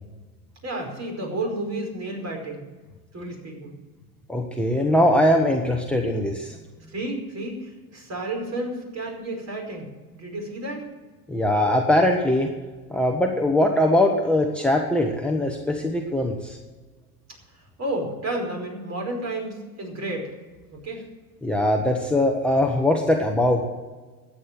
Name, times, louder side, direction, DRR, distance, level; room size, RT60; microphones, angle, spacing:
voice 1, 0.6-2.7 3.1-3.7 6.9-9.9 10.1-10.9 17.5-20.3 20.7-21.0, right 1 dB, 35° right, 1 dB, 5.1 m, -31 dB
voice 2, 4.3-6.6 11.3-12.5 12.9-16.6 21.4-23.6, left 1 dB, ahead, 2 dB, 1.4 m, -21 dB
12.5 x 8.8 x 7.6 m, 1.3 s
supercardioid pair, 95°, 45 cm